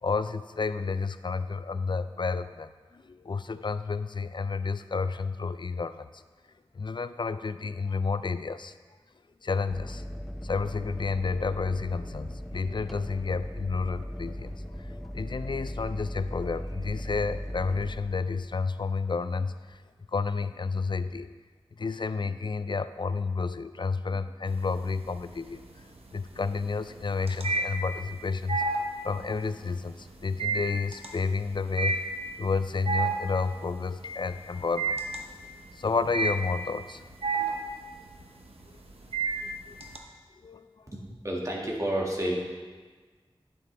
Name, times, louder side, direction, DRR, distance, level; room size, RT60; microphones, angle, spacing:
voice 1, 0.0-6.2 6.7-8.7 9.4-10.0 10.4-14.5 14.8-19.8 20.1-21.3 21.8-25.6 26.1-28.6 29.0-32.0 32.4-35.5 35.7-37.0 37.4-37.7 39.4-39.7 40.4-40.6, left 4 dB, 50° left, 13 dB, 0.4 m, -31 dB
sound 1, 9.7-18.8 20.9-21.2, equal, ahead, 0.6 m, -38 dB
sound 2, 24.5-25.1 25.5-40.0, right 3 dB, 80° right, 0.9 m, -31 dB
voice 2, 40.9-42.4, right 1 dB, 30° right, -2 dB, 1.9 m, -30 dB
9.4 x 8.7 x 3.4 m, 1.4 s
wide cardioid pair, 40°, 10 cm